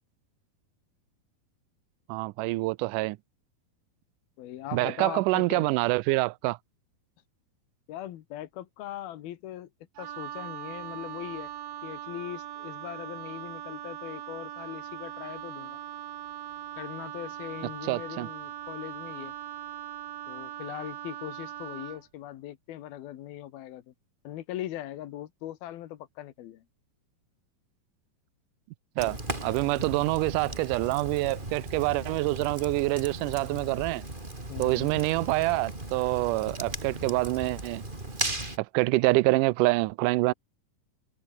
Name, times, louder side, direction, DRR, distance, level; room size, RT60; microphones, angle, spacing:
voice 1, 2.1-3.2 4.7-6.6 17.8-18.3 29.0-34.0 34.6-37.8 38.6-40.3, right 21 dB, 85° right, 1.9 m, -26 dB
voice 2, 4.4-5.7 7.9-9.7 10.0-11.5 11.8-15.8 16.8-19.3 20.3-23.9 24.2-26.6 34.5-34.9, left 13 dB, 80° left, 3.3 m, -40 dB
Wind instrument woodwind instrument, 10.0-22.0, right 11 dB, 65° right, 1.7 m, -40 dB
Fire, 29.0-38.6, right 2 dB, 15° right, 4.0 m, -37 dB
omnidirectional pair, 4.3 m